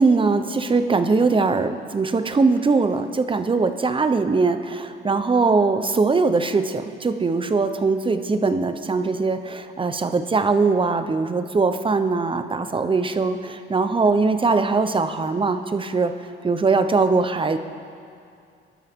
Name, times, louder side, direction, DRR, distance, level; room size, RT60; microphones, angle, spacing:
voice 1, 0.0-16.1 16.4-17.6, right 4 dB, 25° right, 9 dB, 0.9 m, -21 dB
23.5 x 12.0 x 3.7 m, 2.4 s
cardioid pair, 90°, 20 cm